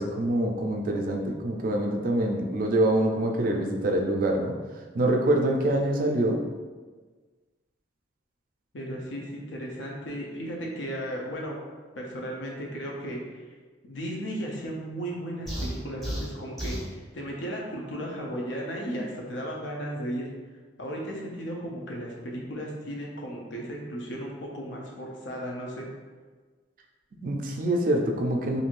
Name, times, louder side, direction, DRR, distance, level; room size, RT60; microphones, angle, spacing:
voice 1, 0.0-4.5 4.9-6.4 27.2-28.6, right 1 dB, 45° right, 2 dB, 0.3 m, -25 dB
voice 2, 8.7-11.6 11.9-13.4 13.9-20.3 20.8-25.9, equal, 75° left, -1 dB, 0.6 m, -35 dB
sound 1, 15.5-16.9, equal, ahead, 0.7 m, -33 dB
3.0 x 2.6 x 2.5 m, 1.4 s
head